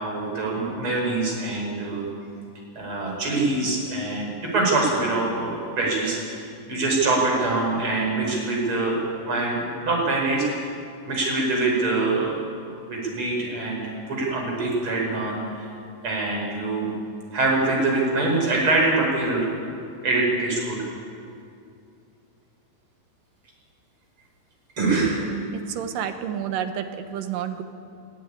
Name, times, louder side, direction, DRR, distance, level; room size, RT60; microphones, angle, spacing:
voice 1, 0.0-2.0 2.8-9.0 9.3-10.6 11.1-12.4 12.9-15.7 16.0-16.9 17.3-19.5 20.0-20.9 24.8-25.3, right 2 dB, 35° right, -1 dB, 5.5 m, -24 dB
voice 2, 25.5-27.6, right 9 dB, 75° right, 7 dB, 2.7 m, -30 dB
21.0 x 13.5 x 9.9 m, 2.5 s
omnidirectional pair, 4.0 m